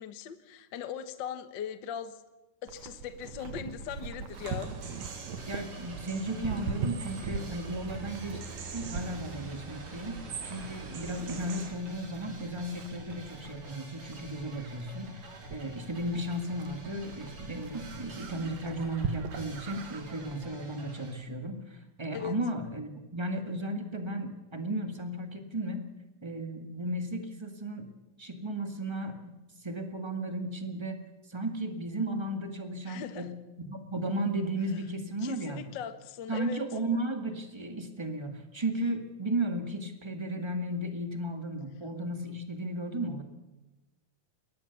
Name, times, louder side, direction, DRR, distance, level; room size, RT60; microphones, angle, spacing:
voice 1, 0.0-2.1 2.6-4.7 22.1-22.3 32.8-33.3 35.2-36.6, left 8 dB, 85° left, 10 dB, 1.0 m, -39 dB
Livestock farm animals working animals, 2.7-20.4, right 5 dB, 60° right, 2.3 m, -42 dB
sound 1, 4.3-11.7, right 5 dB, 85° right, 4.2 m, -43 dB
sound 2, 4.8-21.1, right 1 dB, 40° right, 4.6 m, -48 dB
voice 2, 5.5-8.4 8.7-25.8 26.2-27.9 28.2-31.0 31.3-35.7 36.3-43.2, right 1 dB, 20° right, 5 dB, 0.7 m, -35 dB
22.0 x 19.0 x 7.1 m, 1.1 s
omnidirectional pair, 4.0 m